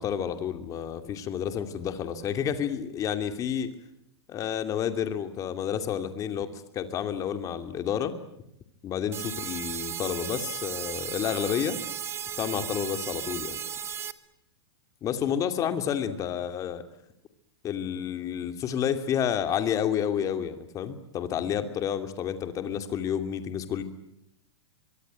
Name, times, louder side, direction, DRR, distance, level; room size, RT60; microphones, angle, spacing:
voice 1, 0.0-3.7 4.3-8.1 8.8-11.8 12.4-13.6 15.0-16.8 17.6-23.8, left 9 dB, 25° left, 9 dB, 2.6 m, -30 dB
sound 1, 9.1-14.1, right 8 dB, 15° right, 1.3 m, -35 dB
24.5 x 23.5 x 9.0 m, 0.78 s
hypercardioid pair, 145°, 14 cm